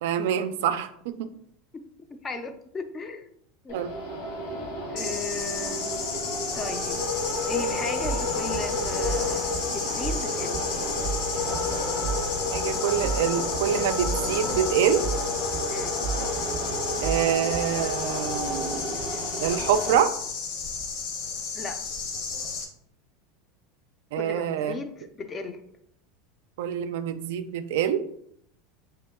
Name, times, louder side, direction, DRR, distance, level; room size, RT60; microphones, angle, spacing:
voice 1, 0.0-1.3 3.7-3.9 12.5-15.1 17.0-19.0 19.4-20.2 24.1-24.8 26.6-28.0, right 9 dB, 80° right, 11 dB, 0.3 m, -26 dB
voice 2, 2.2-3.2 3.6-3.8 4.9-6.0 6.5-7.0 7.5-10.6 15.7-16.0 21.5-21.8 24.2-25.6, left 3 dB, 20° left, 9 dB, 0.4 m, -36 dB
sound 1, 3.7-19.9, left 2 dB, 75° left, 1.3 m, -31 dB
sound 2, 5.0-22.6, left 5 dB, 55° left, 0.8 m, -33 dB
sound 3, 8.0-17.8, right 6 dB, 30° right, 0.6 m, -34 dB
3.0 x 2.9 x 3.5 m, 0.68 s
supercardioid pair, 150°, 0 cm